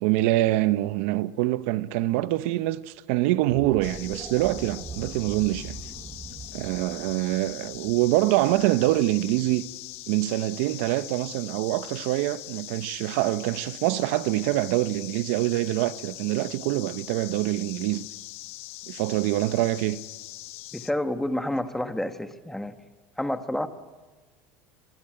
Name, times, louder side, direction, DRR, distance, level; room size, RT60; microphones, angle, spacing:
voice 1, 0.0-5.8 6.5-9.6 10.1-18.1 18.9-20.0, right 16 dB, 70° right, 0.9 m, -25 dB
sound 1, 3.4-9.7, right 4 dB, 20° right, 1.1 m, -42 dB
sound 2, 3.8-20.9, left 19 dB, 80° left, 0.8 m, -42 dB
voice 2, 20.7-22.7 23.2-23.7, left 1 dB, 5° left, 1.4 m, -29 dB
25.0 x 21.5 x 9.0 m
supercardioid pair, 120°, 7 cm